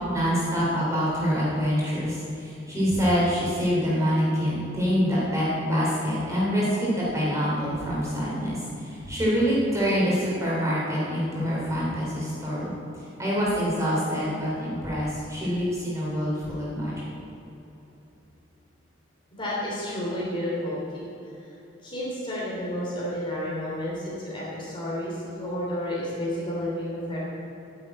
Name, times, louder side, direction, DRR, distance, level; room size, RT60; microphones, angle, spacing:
voice 1, 0.1-12.7 13.0-16.9, equal, 15° right, -7 dB, 3.3 m, -26 dB
voice 2, 19.4-20.8 21.4-21.5 21.8-27.2, left 1 dB, 25° left, -6 dB, 3.1 m, -31 dB
10.0 x 8.0 x 8.5 m, 3.0 s
head